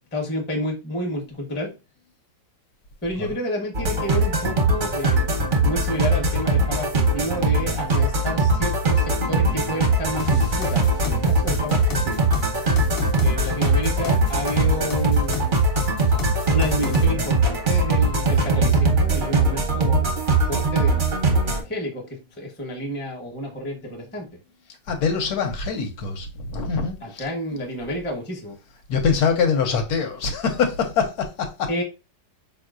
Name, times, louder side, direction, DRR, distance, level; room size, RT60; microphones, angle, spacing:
voice 1, 0.1-1.7 3.0-5.3 5.6-12.3 13.2-15.5 16.5-20.1 20.4-24.3 27.0-28.6 31.7-31.8, equal, 10° left, 0.5 m, -30 dB
sound 1, 3.7-21.6, right 2 dB, 50° right, 0.6 m, -21 dB
sound 2, 10.2-17.0, equal, 50° left, 0.7 m, -28 dB
voice 2, 24.9-27.2 28.9-31.7, left 5 dB, 70° left, 1.2 m, -24 dB
4.5 x 3.0 x 2.4 m
omnidirectional pair, 1.8 m